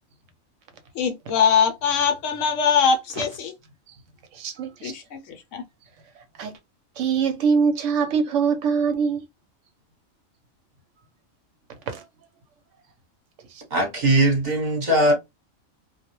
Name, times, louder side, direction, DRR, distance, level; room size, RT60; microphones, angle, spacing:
voice 1, 0.9-3.5 4.8-5.6, left 6 dB, 70° left, 0.9 m, -22 dB
voice 2, 4.3-5.0 6.2-6.5 7.0-9.2 11.9-12.0 13.5-13.6, right 6 dB, 70° right, 0.9 m, -24 dB
voice 3, 13.7-15.2, right 1 dB, 40° right, 0.9 m, -20 dB
2.3 x 2.0 x 2.9 m
omnidirectional pair, 1.4 m